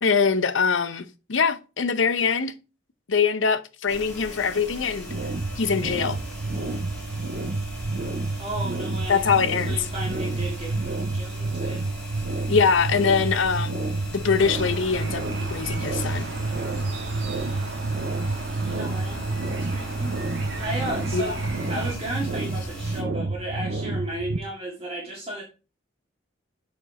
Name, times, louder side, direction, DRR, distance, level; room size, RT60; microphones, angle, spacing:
voice 1, 0.0-2.5 3.1-5.1 5.6-6.2 9.1-9.9 12.5-13.8 14.1-15.2 15.5-16.3 21.1-21.4, left 5 dB, 90° left, 0.7 m, -23 dB
sound 1, 3.9-23.0, equal, 5° left, 2.5 m, -40 dB
sound 2, 5.1-24.4, right 2 dB, 50° right, 0.6 m, -29 dB
voice 2, 8.4-9.3 9.7-11.9 18.7-20.1 20.6-21.3 21.7-25.4, right 1 dB, 30° right, 1.8 m, -34 dB
sound 3, 14.4-22.0, right 2 dB, 75° right, 1.3 m, -36 dB
7.0 x 4.4 x 4.3 m
head